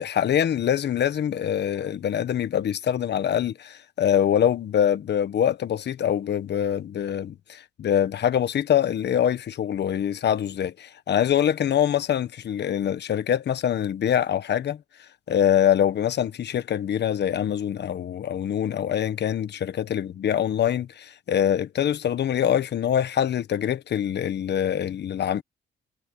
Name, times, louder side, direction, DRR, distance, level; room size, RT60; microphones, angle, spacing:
voice 1, 0.0-14.8 15.3-25.4, left 9 dB, 60° left, 1.4 m, -24 dB
cardioid pair, 90°, 20 cm